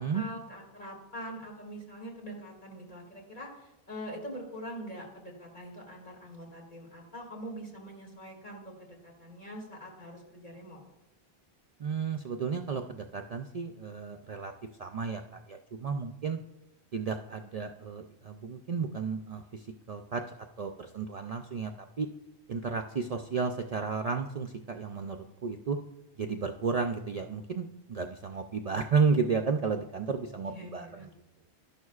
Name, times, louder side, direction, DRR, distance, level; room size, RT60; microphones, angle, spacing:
voice 1, 0.0-10.8 30.4-31.1, equal, 50° left, -1 dB, 2.5 m, -44 dB
voice 2, 11.8-14.5 14.8-16.4 16.9-21.7 22.0-22.1 22.5-25.8 26.2-31.1, right 5 dB, 50° right, 5 dB, 0.5 m, -32 dB
12.5 x 11.0 x 2.4 m, 0.92 s
omnidirectional pair, 1.0 m